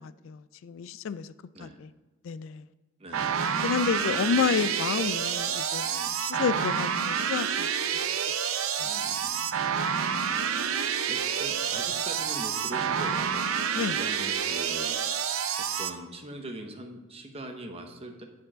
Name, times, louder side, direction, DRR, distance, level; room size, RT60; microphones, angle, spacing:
voice 1, 0.0-1.3 1.6-1.9 2.2-2.6 3.6-7.7 8.8-8.9 13.7-14.0, left 6 dB, 65° left, 0.3 m, -30 dB
voice 2, 3.0-4.7 5.1-5.2 5.8-6.1 6.5-6.7 8.8-9.5 10.1-15.0 15.8-18.2, right 1 dB, 30° right, 1.0 m, -42 dB
sound 1, 3.1-15.9, right 7 dB, 80° right, 0.6 m, -28 dB
10.0 x 4.6 x 6.2 m
head